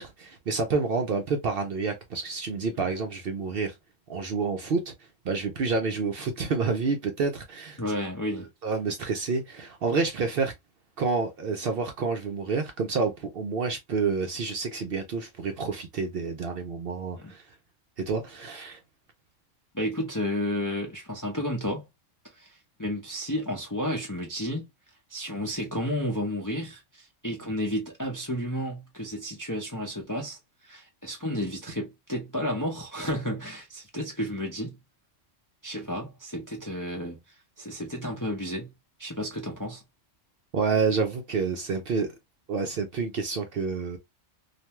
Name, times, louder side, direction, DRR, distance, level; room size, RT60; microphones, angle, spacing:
voice 1, 0.0-3.8 4.1-4.9 5.2-7.8 8.6-10.5 11.0-17.4 18.0-18.8 40.5-42.1 42.5-44.0, right 4 dB, 60° right, 0.7 m, -28 dB
voice 2, 7.8-8.5 17.2-17.3 19.7-21.8 22.2-24.7 25.1-34.8 35.6-38.7 39.0-39.8, equal, 25° left, 0.5 m, -32 dB
2.5 x 2.2 x 2.9 m
omnidirectional pair, 1.3 m